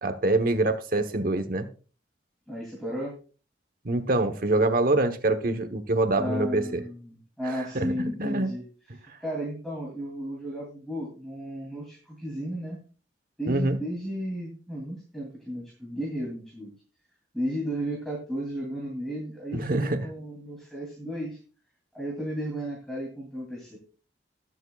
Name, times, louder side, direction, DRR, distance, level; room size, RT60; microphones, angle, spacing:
voice 1, 0.0-1.7 3.8-6.8 7.4-8.5 13.5-13.8 19.5-20.0, right 2 dB, 50° right, 9 dB, 1.1 m, -25 dB
voice 2, 2.5-3.1 6.2-8.6 9.2-12.8 13.4-16.7 17.3-21.4 21.9-23.8, equal, ahead, -4 dB, 2.8 m, -34 dB
21.0 x 7.3 x 2.3 m, 0.38 s
head